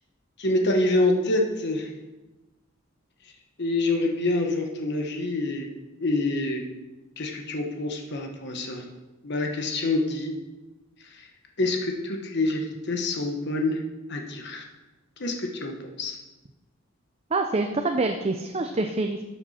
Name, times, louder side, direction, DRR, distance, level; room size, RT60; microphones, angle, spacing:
voice 1, 0.4-1.9 3.6-5.7 6.0-6.6 7.2-8.9 9.2-10.3 11.1-11.3 11.6-13.8 14.1-14.7 15.2-16.2, left 2 dB, 60° left, 2 dB, 1.3 m, -26 dB
voice 2, 17.3-19.2, right 3 dB, 30° right, 5 dB, 0.6 m, -26 dB
12.5 x 7.9 x 4.3 m, 1.1 s
head